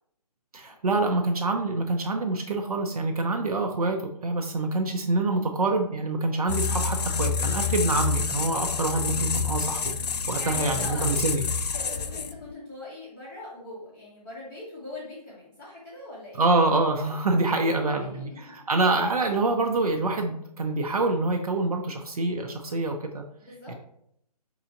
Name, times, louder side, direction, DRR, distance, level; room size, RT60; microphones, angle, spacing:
voice 1, 0.5-9.9 10.3-11.4 16.4-23.2 23.7-23.8, right 2 dB, 65° right, 3 dB, 0.5 m, -26 dB
sound 1, 6.5-12.5, left 5 dB, 75° left, 0.4 m, -28 dB
voice 2, 9.0-9.7 10.1-11.2 11.7-16.4 17.6-18.6 23.4-23.7, left 2 dB, 10° left, -9 dB, 0.6 m, -41 dB
4.7 x 2.9 x 2.5 m, 0.71 s
figure-of-eight pair, 145°, 21 cm